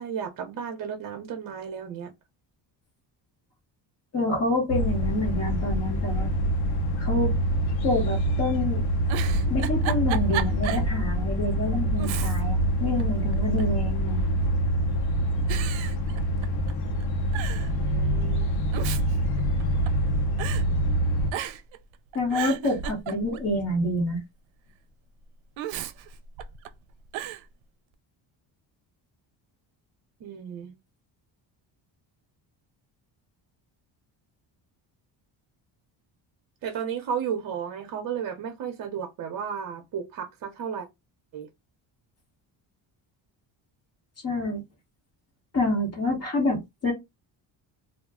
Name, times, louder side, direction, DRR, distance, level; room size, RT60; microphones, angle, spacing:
voice 1, 0.0-2.1 17.7-18.6 30.2-30.7 36.6-40.9 41.3-41.5, right 7 dB, 45° right, 0.7 m, -33 dB
voice 2, 4.1-6.3 7.0-7.4 7.8-8.8 9.5-14.2 22.1-24.2 44.2-44.6 45.5-46.9, left 1 dB, 35° left, 1.2 m, -27 dB
sound 1, 4.7-21.3, equal, 55° left, 0.6 m, -25 dB
Giggle, 9.0-10.9 11.3-11.4 12.0-12.7 13.0-13.8 14.6-15.0 15.5-16.7 17.0-17.1 17.3-17.7 18.5-20.1 20.4-20.6 21.3-21.8 22.1-23.5 25.6-26.7 27.1-27.4, right 10 dB, 85° right, 0.5 m, -34 dB
2.4 x 2.1 x 3.5 m
cardioid pair, 155°, 45 cm